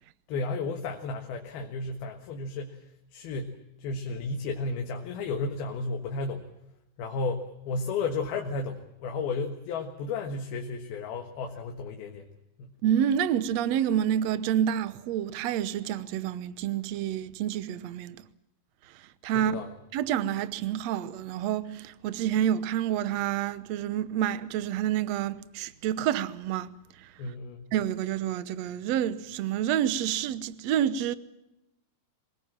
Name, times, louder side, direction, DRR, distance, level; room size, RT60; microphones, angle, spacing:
voice 1, 0.3-2.8 3.1-6.5 7.0-12.3 12.6-12.7 19.3-19.7 27.2-27.7, left 3 dB, 80° left, 3.5 m, -33 dB
voice 2, 12.8-18.2 19.2-19.5 19.9-26.7 27.0-27.1 27.7-31.2, right 10 dB, 70° right, 1.7 m, -28 dB
25.0 x 20.5 x 7.4 m
omnidirectional pair, 4.3 m